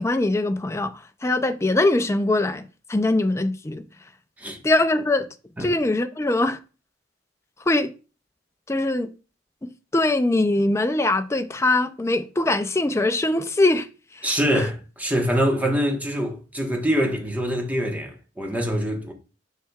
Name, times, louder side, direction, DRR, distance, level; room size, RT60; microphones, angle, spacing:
voice 1, 0.0-3.9 4.6-5.3 5.6-6.6 7.7-7.9 8.7-9.1 9.6-13.9 14.1-14.7, left 2 dB, 15° left, 0.4 m, -22 dB
voice 2, 14.2-19.1, equal, 10° right, 1.3 m, -24 dB
7.3 x 5.7 x 2.4 m
head